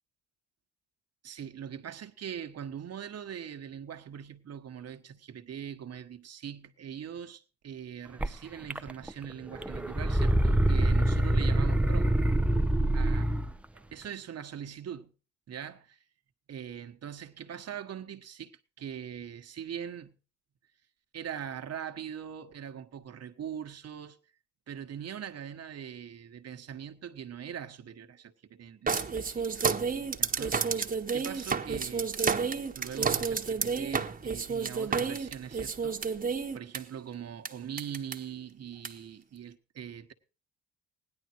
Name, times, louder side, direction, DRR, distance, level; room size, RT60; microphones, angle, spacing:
voice 1, 1.2-12.1 12.9-13.3 13.7-15.1 15.5-16.0 16.5-20.2 21.1-24.2 24.7-32.1 32.7-36.0 36.5-40.1, right 8 dB, 55° right, 1.3 m, -42 dB
sound 1, 8.2-8.3 8.7-9.2 9.5-13.5, right 1 dB, 5° right, 0.6 m, -25 dB
sound 2, 28.9-36.8 37.5-37.6 37.8-38.1 38.8-38.9, right 5 dB, 30° right, 1.2 m, -30 dB
16.5 x 11.0 x 4.5 m
cardioid pair, 90°, 30 cm